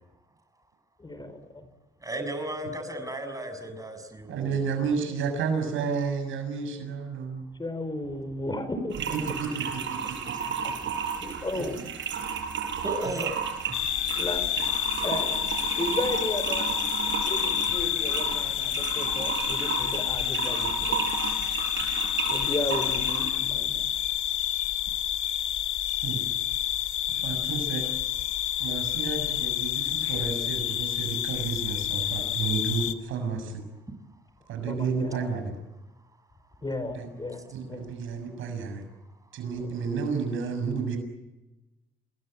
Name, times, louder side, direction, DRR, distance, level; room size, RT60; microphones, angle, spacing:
voice 1, 1.0-1.7 7.6-9.2 10.4-10.7 11.2-11.8 14.2-14.4 15.0-15.5 15.8-16.7 17.2-21.0 22.3-23.9 34.7-35.4 36.6-37.9 39.5-39.7, left 2 dB, 20° left, 10 dB, 5.2 m, -34 dB
voice 2, 2.0-4.5 12.8-13.3 13.7-13.8, right 1 dB, 15° right, 8 dB, 6.7 m, -34 dB
voice 3, 4.3-7.5 9.3-10.4 10.7-10.8 11.5-11.9 26.0-26.2 27.1-27.8 28.6-33.6 34.5-35.5 37.0-37.1 37.5-38.8 39.3-41.0, right 5 dB, 85° right, 7 dB, 6.8 m, -31 dB
sound 1, 8.9-23.3, right 7 dB, 70° right, 6.0 m, -33 dB
sound 2, 13.7-32.9, left 13 dB, 85° left, 1.6 m, -29 dB
28.5 x 21.0 x 9.1 m, 1.0 s
cardioid pair, 90°, 20 cm